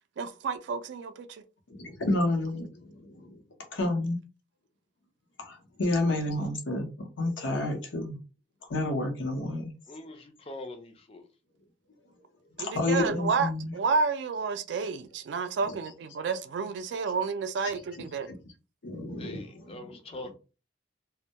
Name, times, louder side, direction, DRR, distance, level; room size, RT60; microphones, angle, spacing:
voice 1, 0.2-1.4 12.6-18.3, right 5 dB, 65° right, 0.3 m, -30 dB
voice 2, 1.7-3.4 3.7-4.2 5.4-8.2 8.7-9.7 12.6-13.7 15.7-15.8 17.6-18.0 18.8-19.8, left 2 dB, 80° left, 0.7 m, -30 dB
voice 3, 9.9-11.3 19.2-20.4, left 2 dB, 30° left, 0.4 m, -43 dB
2.1 x 2.1 x 2.7 m
head